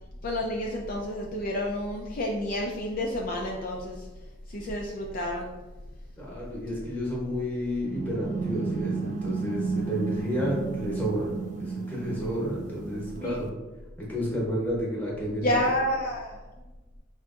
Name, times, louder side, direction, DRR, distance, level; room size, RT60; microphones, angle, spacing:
voice 1, 0.2-4.1 4.5-5.5 13.2-13.4 15.4-16.4, left 1 dB, 45° left, -1 dB, 0.4 m, -29 dB
voice 2, 6.2-11.3 11.6-13.5 14.0-15.5, equal, 10° left, -5 dB, 1.0 m, -31 dB
sound 1, 7.8-13.5, right 4 dB, 40° right, 0.4 m, -33 dB
4.6 x 2.6 x 2.4 m, 1.2 s
head